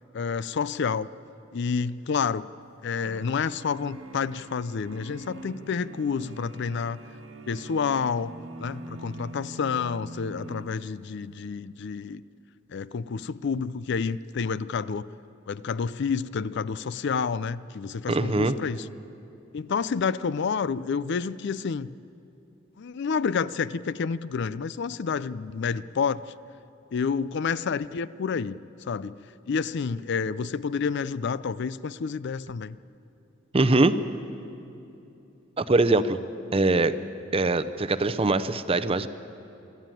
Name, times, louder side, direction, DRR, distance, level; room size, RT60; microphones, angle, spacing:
voice 1, 0.1-1.1 1.5-2.5 2.8-7.0 7.5-8.3 8.6-12.2 12.7-15.1 15.5-18.9 19.5-21.9 22.8-26.2 26.9-28.6 28.9-29.2 29.5-32.8, left 5 dB, 60° left, 17 dB, 0.4 m, -29 dB
sound 1, 3.0-11.3, right 2 dB, 85° right, 1.7 m, -43 dB
voice 2, 18.1-18.5 33.5-34.0 35.6-36.2 36.5-37.0 37.3-39.1, right 2 dB, 30° right, 11 dB, 0.7 m, -22 dB
24.0 x 13.0 x 9.1 m, 2.9 s
head